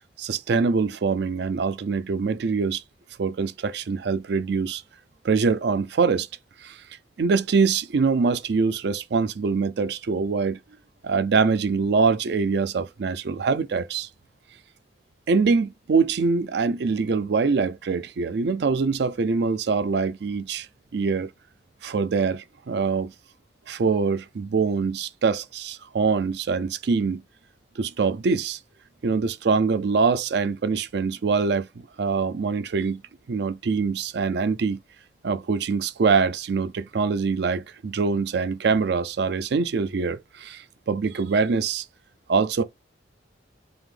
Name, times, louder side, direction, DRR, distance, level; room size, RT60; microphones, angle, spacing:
voice 1, 0.2-2.8 3.2-4.8 5.2-6.3 6.6-6.8 7.2-10.6 11.0-14.1 15.3-20.7 20.9-21.3 21.8-23.1 23.7-27.2 27.8-28.6 29.0-33.0 33.3-34.8 35.2-41.8 42.3-42.6, right 4 dB, 65° right, 0.4 m, -24 dB
3.5 x 2.8 x 3.7 m
head